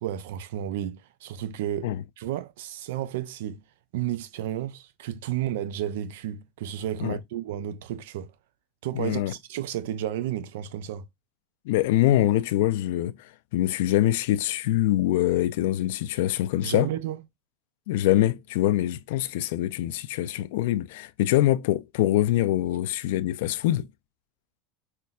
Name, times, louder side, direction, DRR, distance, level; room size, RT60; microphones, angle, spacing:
voice 1, 0.0-1.9 2.2-3.6 3.9-8.3 8.8-11.0 16.6-17.2, right 11 dB, 85° right, 0.4 m, -32 dB
voice 2, 8.9-9.3 11.7-16.9 17.9-23.9, left 14 dB, 80° left, 0.3 m, -24 dB
5.5 x 2.1 x 2.3 m
supercardioid pair, 115°, 0 cm